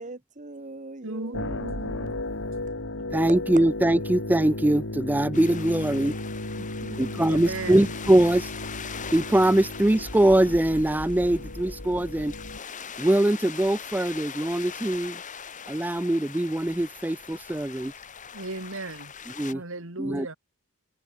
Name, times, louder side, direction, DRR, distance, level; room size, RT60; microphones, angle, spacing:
voice 1, 0.0-1.7 6.6-7.2, right 2 dB, 35° right, 1.5 m, -42 dB
voice 2, 1.0-2.2 7.3-7.9 18.3-19.1 19.5-20.4, right 2 dB, 60° right, 3.5 m, -36 dB
sound 1, 1.3-12.6, left 1 dB, 60° left, 3.6 m, -35 dB
voice 3, 3.1-6.1 7.0-8.5 9.1-12.3 13.0-15.2 15.7-17.9 19.4-19.6 20.0-20.3, right 1 dB, 10° right, 0.4 m, -22 dB
sound 2, 5.3-19.5, left 7 dB, 35° left, 1.5 m, -41 dB
head